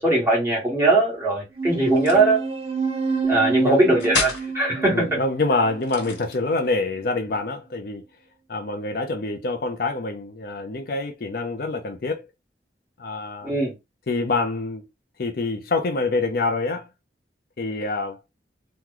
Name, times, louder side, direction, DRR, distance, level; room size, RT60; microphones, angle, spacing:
voice 1, 0.0-2.4 3.2-5.2 13.4-13.7, right 2 dB, 15° right, 1.4 m, -20 dB
sound 1, 1.6-6.5, right 4 dB, 35° right, 0.6 m, -28 dB
sound 2, 1.9-2.4 4.0-4.5 5.8-6.7, left 3 dB, 85° left, 1.4 m, -29 dB
voice 2, 4.8-8.1 8.5-12.2 13.0-13.5 14.1-14.8 15.2-16.9 17.6-18.2, left 3 dB, 55° left, 0.5 m, -26 dB
3.0 x 2.2 x 3.7 m
head